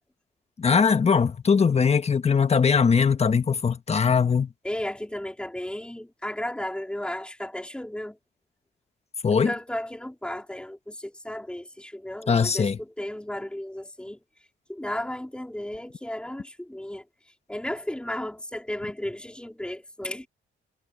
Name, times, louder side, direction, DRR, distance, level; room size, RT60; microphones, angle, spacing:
voice 1, 0.6-4.5 9.2-9.5 12.3-12.8, left 6 dB, 30° left, 1.4 m, -21 dB
voice 2, 4.6-8.2 9.4-14.2 14.7-17.0 17.5-20.3, left 1 dB, 5° left, 4.1 m, -34 dB
cardioid pair, 90°, 20 cm